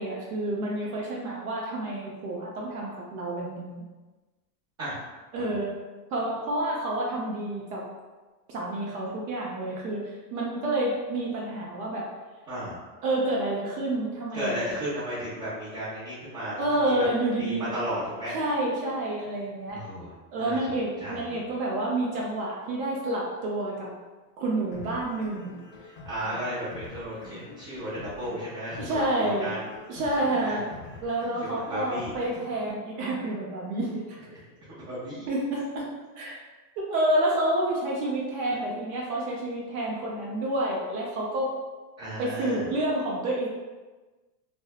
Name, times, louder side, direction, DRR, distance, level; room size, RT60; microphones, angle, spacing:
voice 1, 0.0-3.8 5.3-5.7 6.1-7.8 8.5-12.1 13.0-14.8 16.6-17.7 18.3-19.8 20.3-23.9 24.4-25.5 28.8-29.5 29.9-30.7 31.0-34.2 35.3-35.9 36.2-36.3 36.8-41.5 42.2-43.5, right 1 dB, 60° right, -3 dB, 0.7 m, -29 dB
voice 2, 12.5-12.8 14.3-16.5 16.8-17.1 17.4-18.3 19.7-20.6 21.0-21.4 26.0-29.6 30.3-30.6 31.7-32.1 34.9-35.2 42.0-42.7, equal, 30° right, -12 dB, 0.8 m, -34 dB
sound 1, 24.7-32.7, left 3 dB, 45° left, 0.7 m, -46 dB
2.5 x 2.1 x 2.3 m, 1.2 s
supercardioid pair, 140°, 50 cm